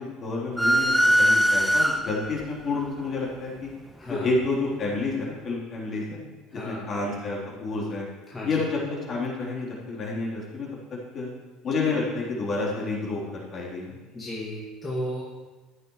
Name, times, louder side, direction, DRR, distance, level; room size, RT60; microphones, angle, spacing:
voice 1, 0.0-3.7 4.1-6.2 6.5-8.1 8.4-10.7 11.1-11.3 11.6-14.0, left 3 dB, 45° left, -4 dB, 3.6 m, -29 dB
sound 1, 0.6-2.4, equal, ahead, 0.7 m, -21 dB
voice 2, 6.5-6.9 8.3-8.5 14.1-15.2, equal, 20° left, -5 dB, 2.2 m, -34 dB
13.5 x 9.4 x 3.2 m, 1.3 s
hypercardioid pair, 70°, 0 cm